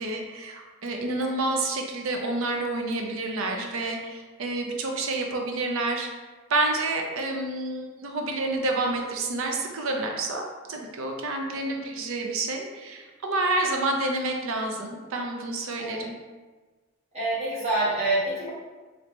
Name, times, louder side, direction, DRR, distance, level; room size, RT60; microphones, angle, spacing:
voice 1, 0.0-6.1 6.5-16.1, right 2 dB, 70° right, 2 dB, 0.5 m, -29 dB
voice 2, 15.8-16.1 17.1-18.5, right 2 dB, 30° right, -9 dB, 1.3 m, -27 dB
3.2 x 2.7 x 3.0 m, 1.3 s
head